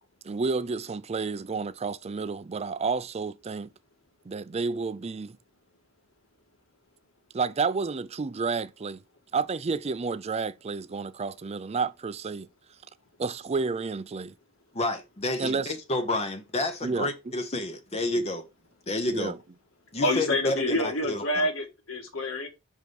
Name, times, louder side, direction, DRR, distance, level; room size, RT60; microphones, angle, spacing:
voice 1, 0.2-3.7 4.3-5.4 7.3-9.0 9.3-12.5 13.2-14.3 15.4-15.7 16.8-17.1 19.1-19.4, right 4 dB, 30° right, 0.4 m, -30 dB
voice 2, 14.7-18.5 18.9-19.3 19.9-21.5, left 2 dB, 30° left, 0.9 m, -30 dB
voice 3, 20.0-22.5, left 1 dB, 85° left, 1.8 m, -27 dB
5.5 x 4.7 x 5.2 m
head